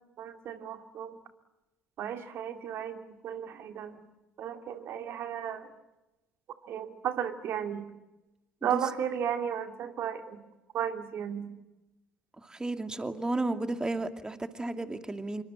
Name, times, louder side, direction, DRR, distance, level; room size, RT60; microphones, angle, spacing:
voice 1, 0.2-1.2 2.0-4.0 4.4-5.7 6.7-7.8 8.6-10.4 10.7-11.5, right 9 dB, 50° right, 7 dB, 2.4 m, -34 dB
voice 2, 12.4-15.4, right 2 dB, 15° right, 8 dB, 2.5 m, -33 dB
27.0 x 24.5 x 8.8 m, 1.0 s
figure-of-eight pair, 55°, 5 cm